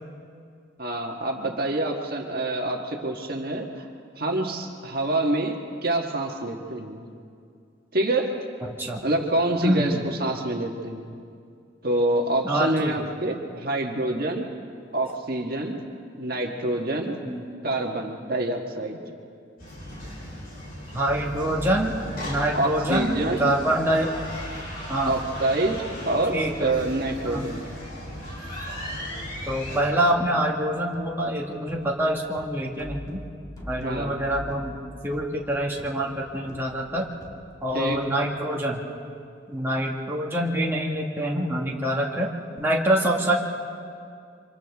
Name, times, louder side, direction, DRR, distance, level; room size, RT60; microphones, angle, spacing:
voice 1, 0.8-3.8 4.2-7.1 7.9-8.4 9.0-11.1 11.8-14.5 14.9-15.8 16.2-17.2 17.6-19.0 22.5-23.5 25.0-27.6 33.7-34.2 37.7-38.0, right 2 dB, 50° right, 1 dB, 1.6 m, -26 dB
voice 2, 9.6-10.0 12.4-12.9 17.2-17.4 20.9-21.9 22.2-24.1 24.9-25.1 26.3-26.7 27.2-27.5 29.5-33.2 33.7-34.8 35.0-37.1 37.6-38.8 39.5-42.3 42.6-43.3, right 1 dB, 10° right, -3 dB, 1.7 m, -25 dB
sound 1, 19.6-29.8, equal, 50° left, 7.0 m, -37 dB
sound 2, 21.0-38.2, equal, 20° left, 2.2 m, -45 dB
29.0 x 25.5 x 3.6 m, 2.3 s
head